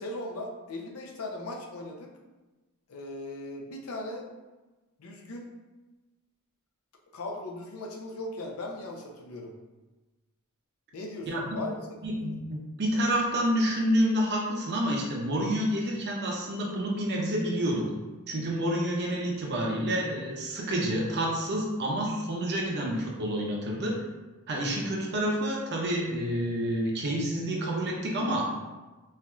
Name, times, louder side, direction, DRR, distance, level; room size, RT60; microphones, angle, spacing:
voice 1, 0.0-2.1 2.9-4.3 5.0-5.5 7.1-9.5 10.9-11.9, left 2 dB, 75° left, 1 dB, 0.6 m, -38 dB
voice 2, 12.0-17.9 18.3-24.0 24.5-28.5, equal, 50° right, -1 dB, 0.7 m, -28 dB
4.5 x 2.6 x 2.3 m, 1.2 s
head